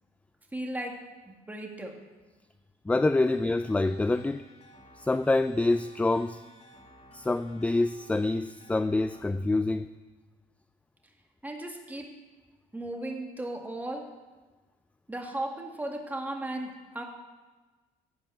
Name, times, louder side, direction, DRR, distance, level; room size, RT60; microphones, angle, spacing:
voice 1, 0.5-1.0 1.3-2.0 11.4-12.2 12.7-14.1 15.1-17.0, right 1 dB, 10° right, 2 dB, 2.1 m, -36 dB
voice 2, 2.9-4.5 5.0-6.4 7.1-9.9, left 2 dB, 10° left, 12 dB, 0.3 m, -26 dB
sound 1, 3.2-9.2, equal, 45° left, 3.8 m, -55 dB
16.0 x 5.4 x 8.7 m, 1.3 s
cardioid pair, 110°, 17 cm